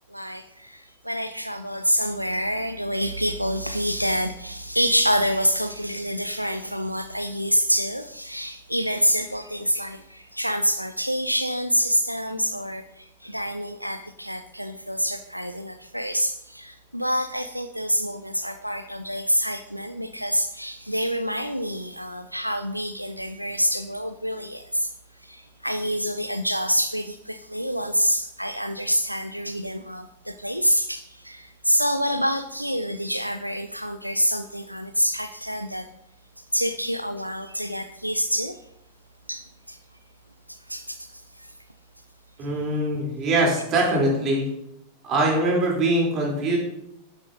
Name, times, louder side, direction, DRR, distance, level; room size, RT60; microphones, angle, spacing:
voice 1, 0.1-24.9 25.2-35.9 36.5-38.6 39.3-39.8 40.7-41.1 43.0-43.1, equal, 90° right, 10 dB, 0.4 m, -27 dB
voice 2, 42.4-44.5 45.0-46.6, right 1 dB, 35° right, -2 dB, 3.5 m, -22 dB
11.5 x 9.7 x 2.8 m, 0.81 s
figure-of-eight pair, 90°, 0 cm